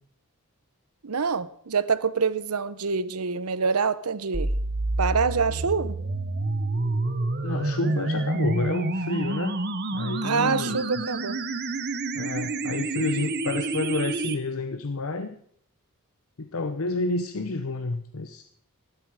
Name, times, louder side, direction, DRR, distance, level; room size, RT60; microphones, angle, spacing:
voice 1, 1.0-4.5 5.0-6.0 10.2-11.4, right 5 dB, 90° right, 15 dB, 0.8 m, -26 dB
sound 1, 4.3-14.3, right 2 dB, 45° right, 1.1 m, -28 dB
voice 2, 7.4-9.6 9.9-10.8 12.1-15.4 16.4-18.4, left 3 dB, 70° left, 9 dB, 0.8 m, -29 dB
14.5 x 12.0 x 4.9 m, 0.63 s
head